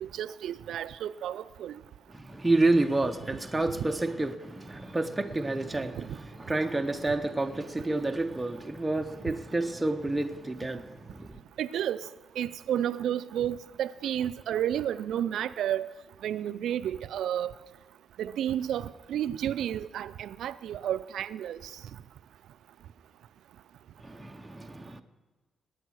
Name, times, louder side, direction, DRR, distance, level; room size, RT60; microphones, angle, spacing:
voice 1, 0.0-1.8 5.9-6.2 11.6-12.1 12.4-15.9 16.2-17.5 18.2-21.6, right 10 dB, 80° right, 0.5 m, -31 dB
voice 2, 2.1-11.4 24.0-25.0, right 2 dB, 10° right, 0.6 m, -29 dB
20.5 x 9.2 x 6.3 m
wide cardioid pair, 175°, 0 cm